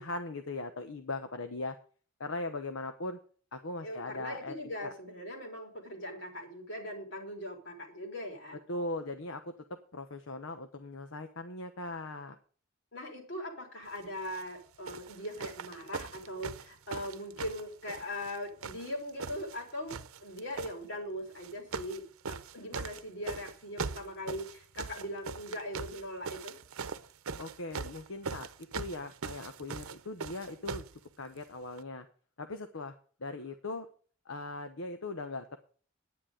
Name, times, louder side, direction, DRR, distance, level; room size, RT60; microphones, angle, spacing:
voice 1, 0.0-1.8 2.2-3.2 3.5-4.5 4.8-4.9 8.7-12.3 27.4-30.8 31.2-32.1 32.4-32.9 33.2-33.9 34.3-35.6, left 2 dB, 75° left, 8 dB, 1.0 m, -39 dB
voice 2, 3.8-8.6 12.9-26.6, left 1 dB, 55° left, 2 dB, 4.0 m, -40 dB
sound 1, 14.2-14.5 14.9-18.4 18.6-19.6 19.9-20.7 21.4-22.0 22.2-30.9 31.8-31.9, right 5 dB, 85° right, 0.8 m, -40 dB
10.0 x 9.7 x 5.1 m, 0.43 s
head